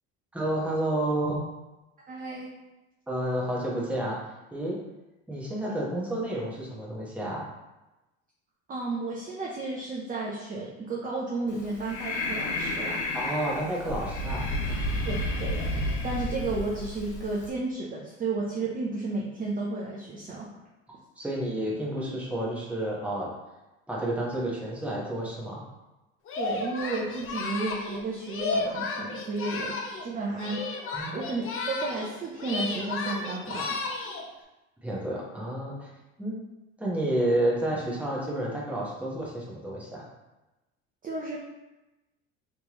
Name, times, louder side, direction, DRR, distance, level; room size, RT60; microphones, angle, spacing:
voice 1, 0.3-1.4 3.1-4.2 4.5-4.8 5.3-7.4 13.1-14.4 21.2-23.3 23.9-25.6 30.9-31.1 34.8-35.9 36.2-36.3 36.8-40.0, right 1 dB, 5° right, -5 dB, 1.1 m, -30 dB
voice 2, 2.1-2.5 8.7-13.0 15.1-15.6 16.0-20.5 26.4-30.6 31.1-33.8 41.0-41.4, right 3 dB, 25° right, -4 dB, 0.7 m, -32 dB
Breathing, 11.5-17.5, left 1 dB, 65° left, 0.9 m, -31 dB
Singing, 26.3-30.1 30.4-32.1 32.4-34.3, left 3 dB, 40° left, 0.7 m, -33 dB
3.4 x 3.2 x 3.0 m, 1.0 s
supercardioid pair, 90°, 32 cm